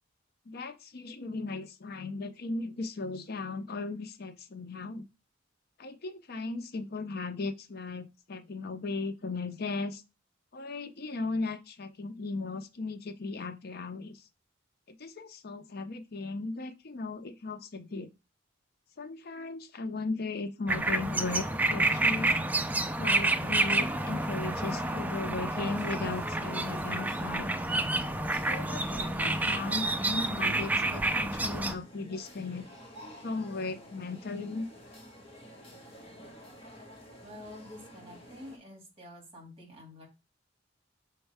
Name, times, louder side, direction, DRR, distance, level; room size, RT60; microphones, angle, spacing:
voice 1, 0.5-5.0 5.8-10.0 10.5-14.2 15.0-18.1 19.0-22.4 23.0-27.5 28.4-32.7 33.2-34.7, left 3 dB, 55° left, 0.6 m, -37 dB
sound 1, 20.7-31.7, right 2 dB, 10° right, 0.4 m, -29 dB
sound 2, 23.0-38.6, equal, 30° left, 1.7 m, -51 dB
voice 2, 37.2-40.1, left 1 dB, 30° right, 2.4 m, -48 dB
6.2 x 4.5 x 3.4 m
head